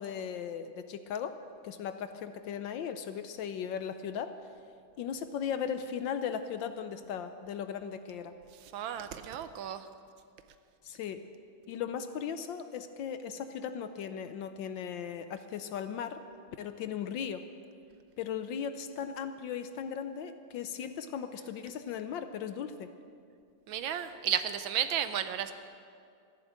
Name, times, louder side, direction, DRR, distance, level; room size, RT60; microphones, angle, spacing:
voice 1, 0.0-1.4 1.6-4.4 5.0-8.3 10.8-11.2 11.7-16.2 16.6-17.4 18.2-22.9, left 8 dB, 70° left, 9 dB, 1.2 m, -37 dB
voice 2, 8.7-9.9 23.7-25.5, right 9 dB, 75° right, 10 dB, 1.3 m, -33 dB
14.0 x 11.0 x 7.5 m, 2.3 s
omnidirectional pair, 2.3 m